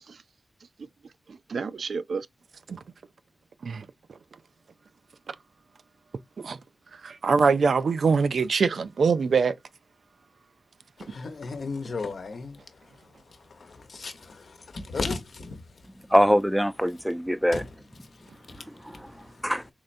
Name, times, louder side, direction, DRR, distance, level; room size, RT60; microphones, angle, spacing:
voice 1, 1.3-2.3 2.7-2.8 3.6-3.9 5.3-5.4 6.4-6.6 7.0-9.6, right 5 dB, 80° right, 0.3 m, -24 dB
voice 2, 11.0-15.6 17.5-17.7 18.1-19.4, left 3 dB, 75° left, 0.8 m, -36 dB
voice 3, 16.1-17.6 18.5-19.7, equal, ahead, 0.4 m, -24 dB
3.7 x 3.2 x 2.5 m
cardioid pair, 55°, 0 cm